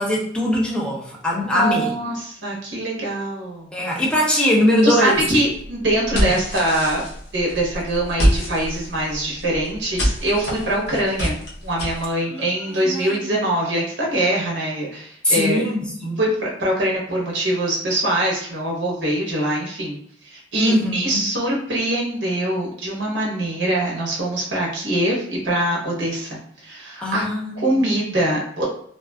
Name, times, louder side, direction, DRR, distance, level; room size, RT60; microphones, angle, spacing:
voice 1, 0.0-1.9 3.7-5.2 6.1-6.3 12.3-13.4 15.2-16.2 20.6-21.2 27.0-27.9, left 1 dB, 5° left, -3 dB, 0.5 m, -21 dB
voice 2, 1.4-3.9 4.8-7.0 7.3-11.3 11.6-15.6 16.2-20.0 20.2-27.2 27.5-28.6, right 1 dB, 65° right, -3 dB, 0.8 m, -23 dB
sound 1, 5.1-12.1, equal, 65° left, 0.7 m, -26 dB
2.5 x 2.3 x 2.2 m, 0.66 s
head